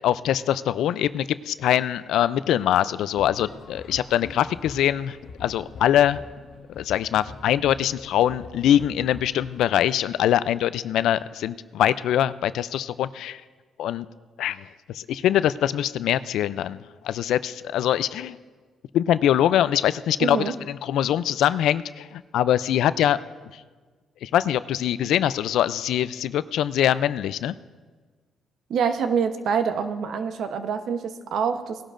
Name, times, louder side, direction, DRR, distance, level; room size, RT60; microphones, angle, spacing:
voice 1, 0.0-6.2 6.8-13.4 13.8-14.1 14.4-16.8 17.0-18.4 18.9-20.4 20.7-23.2 24.2-27.6, left 11 dB, 80° left, 16 dB, 0.4 m, -23 dB
sound 1, 3.1-9.7, left 4 dB, 60° left, 0.9 m, -43 dB
voice 2, 20.2-20.5 28.7-31.8, right 6 dB, 70° right, 8 dB, 0.9 m, -26 dB
18.5 x 11.5 x 2.5 m, 1.4 s
cardioid pair, 90°, 0 cm